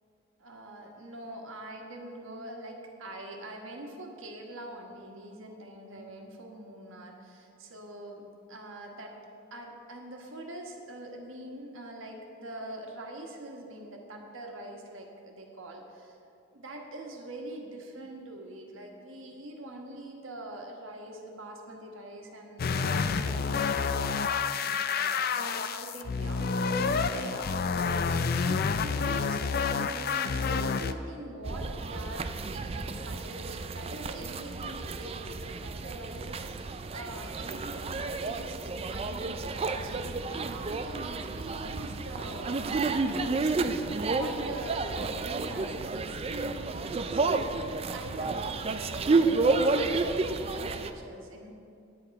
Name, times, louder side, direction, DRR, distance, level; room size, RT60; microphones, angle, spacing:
voice 1, 0.4-9.1 9.5-16.2 16.5-26.5 26.8-43.8 44.1-51.5, right 1 dB, 75° right, 1 dB, 1.5 m, -44 dB
sound 1, 22.6-30.9, left 5 dB, 50° left, 0.4 m, -29 dB
sound 2, 31.4-50.9, right 3 dB, 30° right, 0.4 m, -31 dB
9.3 x 8.8 x 5.3 m, 2.6 s
head